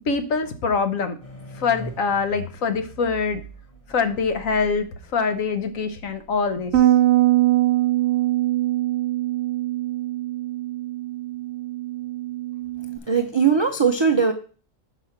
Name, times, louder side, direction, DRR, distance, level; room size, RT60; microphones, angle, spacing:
voice 1, 0.1-1.2 1.5-3.4 3.9-4.9 5.1-6.9, left 5 dB, 70° left, 9 dB, 1.3 m, -24 dB
sound 1, 1.2-6.8, equal, 25° left, 1.1 m, -42 dB
Bass guitar, 6.7-13.0, right 15 dB, 60° right, 0.8 m, -22 dB
voice 2, 13.1-14.3, right 6 dB, 45° right, 6 dB, 0.3 m, -19 dB
6.1 x 5.1 x 5.7 m, 0.39 s
omnidirectional pair, 1.5 m